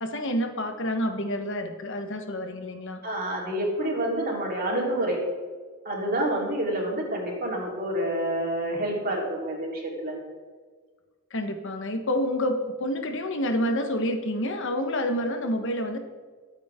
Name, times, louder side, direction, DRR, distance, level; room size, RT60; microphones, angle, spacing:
voice 1, 0.0-3.0 11.3-16.0, left 1 dB, 60° left, 6 dB, 1.3 m, -28 dB
voice 2, 3.0-5.2 5.9-10.2, right 1 dB, 45° right, -2 dB, 3.9 m, -28 dB
22.5 x 8.8 x 3.7 m, 1.5 s
head